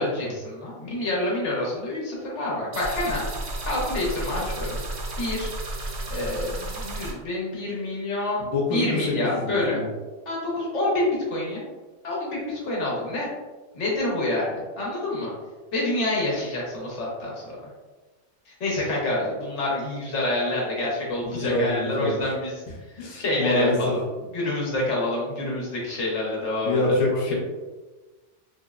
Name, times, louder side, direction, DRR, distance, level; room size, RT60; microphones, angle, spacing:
voice 1, 0.0-3.2 3.6-4.8 5.2-5.5 6.1-8.4 8.7-9.8 10.3-11.6 12.0-13.3 13.7-15.3 15.7-17.6 18.5-22.5 22.9-24.0 24.3-26.8 27.3-27.4, left 1 dB, 75° left, -4 dB, 1.2 m, -27 dB
sound 1, 2.7-7.1, right 2 dB, 70° right, 0.9 m, -32 dB
voice 2, 8.5-9.9 21.3-22.2 23.0-23.9 26.6-27.3, left 2 dB, 40° left, -3 dB, 0.4 m, -26 dB
3.6 x 2.0 x 2.3 m, 1.2 s
omnidirectional pair, 1.2 m